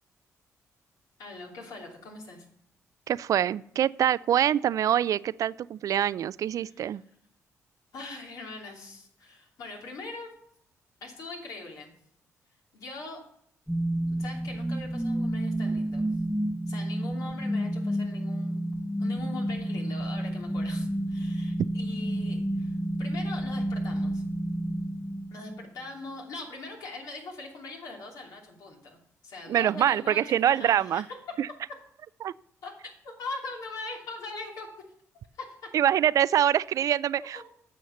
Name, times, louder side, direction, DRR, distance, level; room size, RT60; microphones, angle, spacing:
voice 1, 1.2-2.5 6.6-7.0 7.9-10.3 11.0-11.9 12.7-13.2 14.2-16.1 16.7-18.6 19.0-22.7 23.0-24.2 25.3-31.2 32.6-34.7 35.3-35.4 37.2-37.4, left 3 dB, 75° left, 1 dB, 2.8 m, -41 dB
voice 2, 3.1-7.0 29.5-31.0 31.4-31.5 32.2-32.3 35.7-37.4, right 10 dB, 65° right, 19 dB, 0.3 m, -25 dB
sound 1, 13.7-25.7, right 1 dB, ahead, 0.7 m, -30 dB
9.4 x 6.5 x 7.0 m, 0.69 s
cardioid pair, 70°, 6 cm